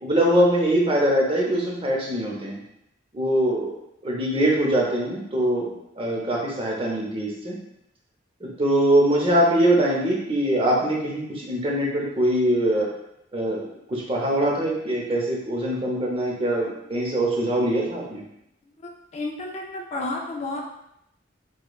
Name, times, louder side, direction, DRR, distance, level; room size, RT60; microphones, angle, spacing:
voice 1, 0.0-2.6 3.1-3.8 4.0-5.7 6.0-7.6 8.4-12.9 13.3-18.2, right 1 dB, 30° right, -2 dB, 0.7 m, -23 dB
voice 2, 18.8-20.7, left 2 dB, 35° left, 1 dB, 0.3 m, -31 dB
4.8 x 2.3 x 2.3 m, 0.80 s
head